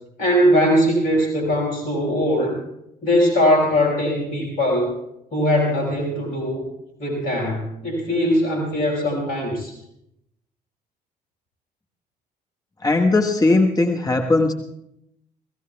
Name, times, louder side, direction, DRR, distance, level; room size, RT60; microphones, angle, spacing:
voice 1, 0.2-2.6 3.0-4.9 5.3-6.7 7.0-9.7, equal, 70° left, -1 dB, 5.4 m, -20 dB
voice 2, 12.8-14.5, left 2 dB, 20° left, 3 dB, 1.3 m, -18 dB
29.5 x 17.0 x 2.3 m, 0.80 s
figure-of-eight pair, 50°, 21 cm